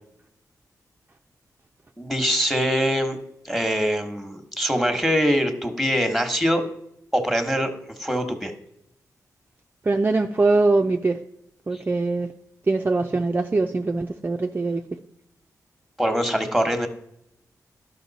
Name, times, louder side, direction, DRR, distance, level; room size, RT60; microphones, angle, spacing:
voice 1, 2.0-3.2 3.4-6.6 7.1-8.5 16.0-16.9, equal, ahead, 6 dB, 1.2 m, -23 dB
voice 2, 9.9-11.2 11.7-12.3 12.7-14.8, right 3 dB, 25° right, 3 dB, 0.5 m, -22 dB
12.0 x 5.4 x 4.1 m, 0.78 s
cardioid pair, 70°, 7 cm